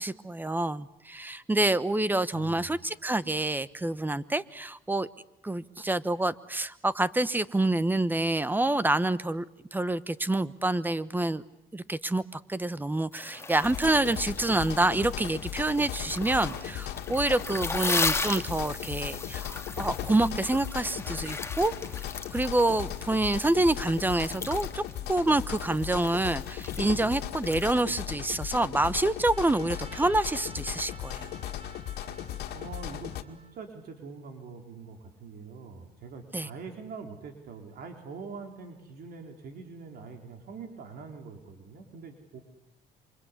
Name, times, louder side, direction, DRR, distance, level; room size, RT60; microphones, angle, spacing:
voice 1, 0.0-5.1 5.4-9.4 9.7-11.4 11.7-22.0 22.3-31.3 36.3-36.5, right 2 dB, 10° right, 15 dB, 1.1 m, -27 dB
voice 2, 2.3-2.8 32.5-42.4, right 4 dB, 65° right, 4 dB, 4.1 m, -44 dB
sound 1, 13.1-27.8, left 3 dB, 15° left, 2.3 m, -37 dB
sound 2, 13.6-33.2, left 11 dB, 75° left, 2.1 m, -37 dB
Trumpet, 29.2-33.7, right 2 dB, 35° right, 3.6 m, -51 dB
27.5 x 25.0 x 8.4 m, 0.85 s
cardioid pair, 110°, 17 cm